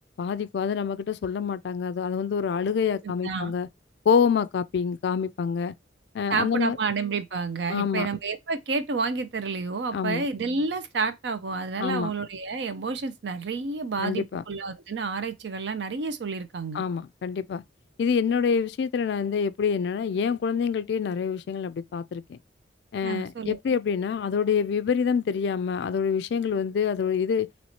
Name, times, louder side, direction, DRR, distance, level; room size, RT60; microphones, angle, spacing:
voice 1, 0.2-3.7 4.1-5.7 6.1-6.8 7.7-8.1 9.9-10.3 11.8-12.1 14.0-14.4 16.7-17.6 18.0-22.4 22.9-27.5, left 6 dB, 60° left, 0.3 m, -26 dB
voice 2, 3.0-3.5 6.3-16.8 23.0-23.6, right 4 dB, 65° right, 0.5 m, -30 dB
3.0 x 2.9 x 4.2 m
head